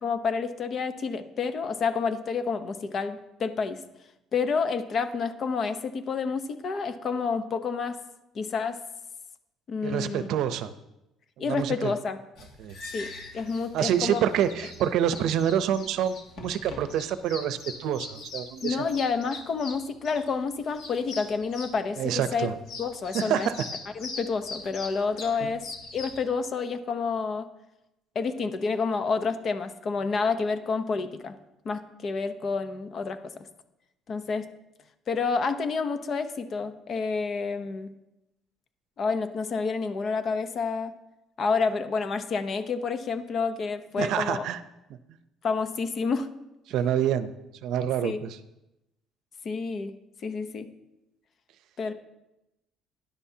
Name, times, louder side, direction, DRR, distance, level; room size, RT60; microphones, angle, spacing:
voice 1, 0.0-3.8 4.3-8.0 8.3-8.8 9.7-10.3 11.4-12.2 12.9-14.2 18.6-22.5 22.8-23.5 24.0-25.6 25.9-27.5 28.1-31.3 31.6-33.2 34.1-34.4 35.1-37.9 39.0-40.9 41.4-44.4 45.4-46.3 48.0-48.2 49.4-49.9 50.2-50.7 51.8-51.9, left 5 dB, 45° left, 10 dB, 0.8 m, -29 dB
voice 2, 9.8-10.7 11.4-11.9 12.6-12.7 13.7-18.9 22.0-22.6 23.1-23.6 25.4-25.5 44.0-44.6 46.7-47.3 47.6-48.4, right 9 dB, 75° right, 12 dB, 0.6 m, -27 dB
sound 1, 12.4-26.2, left 3 dB, 65° left, 2.1 m, -41 dB
13.0 x 10.5 x 2.8 m, 0.93 s
cardioid pair, 125°, 0 cm